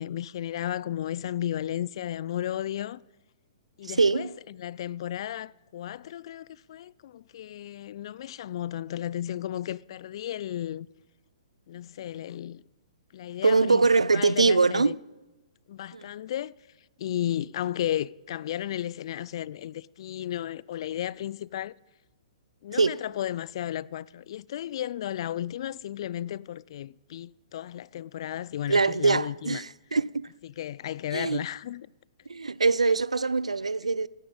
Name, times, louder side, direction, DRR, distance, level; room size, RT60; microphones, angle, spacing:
voice 1, 0.0-3.0 3.8-10.9 11.7-12.6 13.1-13.9 14.1-14.9 15.7-16.5 17.0-21.7 22.6-29.6 30.6-31.9, left 11 dB, 55° left, 0.3 m, -34 dB
voice 2, 3.8-4.3 13.4-15.0 15.9-16.1 22.7-23.0 28.7-30.3 31.1-31.4 32.3-34.1, right 4 dB, 85° right, 0.4 m, -23 dB
14.5 x 10.0 x 5.4 m
figure-of-eight pair, 120°, 3 cm